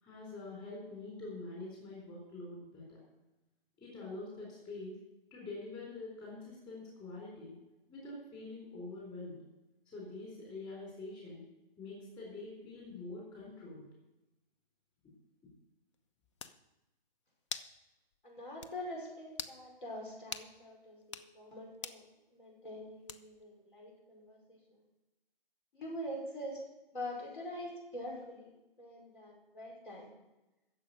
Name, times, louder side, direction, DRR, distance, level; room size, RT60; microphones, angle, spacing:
voice 1, 0.0-3.0 3.8-5.0 5.3-7.6 7.9-9.4 9.9-11.5 11.8-13.9, left 2 dB, 15° left, -3 dB, 3.9 m, -45 dB
sound 1, 15.9-16.0 16.4-16.6 17.5-17.8 18.1-18.2 18.6-18.8 19.3-19.6 20.3-20.5 21.0-21.3 21.8-22.0 23.1-23.4, left 6 dB, 30° left, 0.6 m, -43 dB
voice 2, 18.2-22.0 22.3-24.6 25.7-26.6 26.9-28.5 28.8-30.1, equal, 60° left, 0 dB, 5.5 m, -44 dB
11.0 x 7.4 x 9.1 m, 1.0 s
figure-of-eight pair, 135°, 29 cm